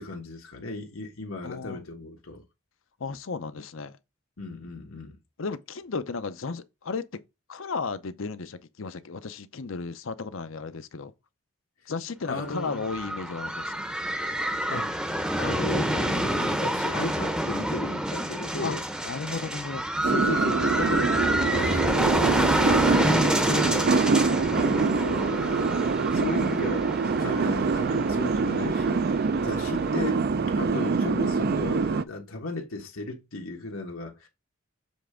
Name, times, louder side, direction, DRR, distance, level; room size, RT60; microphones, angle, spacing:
voice 1, 0.0-2.4 4.4-5.2 12.3-12.8 14.7-18.8 20.0-24.1 24.4-30.2 30.5-34.3, left 2 dB, 85° left, 1.5 m, -35 dB
voice 2, 1.4-1.8 3.0-4.0 5.4-7.0 7.5-11.1 11.9-13.8 18.6-18.8 19.0-19.9, left 4 dB, 70° left, 0.7 m, -34 dB
sound 1, 12.4-30.1, right 1 dB, 5° right, 0.7 m, -28 dB
sound 2, 20.0-32.0, right 4 dB, 45° right, 0.4 m, -25 dB
7.3 x 3.3 x 5.0 m
head